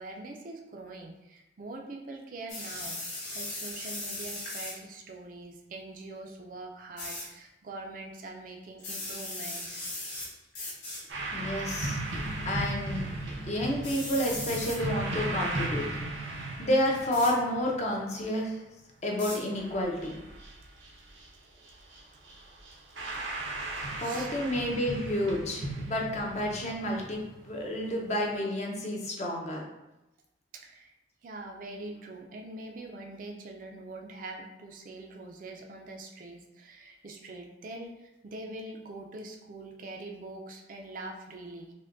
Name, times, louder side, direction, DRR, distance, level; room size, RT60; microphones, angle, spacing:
voice 1, 0.0-3.0 3.3-9.7 23.1-23.2 23.6-24.3 30.5-30.9 31.2-41.7, right 2 dB, 45° right, 2 dB, 0.4 m, -43 dB
sound 1, 2.5-4.8 7.0-7.2 8.8-10.3 10.5-11.0 11.8-12.2 13.8-14.8 17.1-17.3 19.2-19.4, left 2 dB, 70° left, 1.3 m, -38 dB
sound 2, 11.1-18.4 19.1-19.2 19.6-21.3 21.6-22.0 22.2-28.4, right 2 dB, 90° right, 0.8 m, -37 dB
voice 2, 11.3-12.0 12.4-13.1 13.5-15.8 16.2-16.3 16.6-18.6 19.0-20.2 24.0-29.6, left 1 dB, 40° left, -1 dB, 0.6 m, -30 dB
5.5 x 2.2 x 2.5 m, 0.97 s
head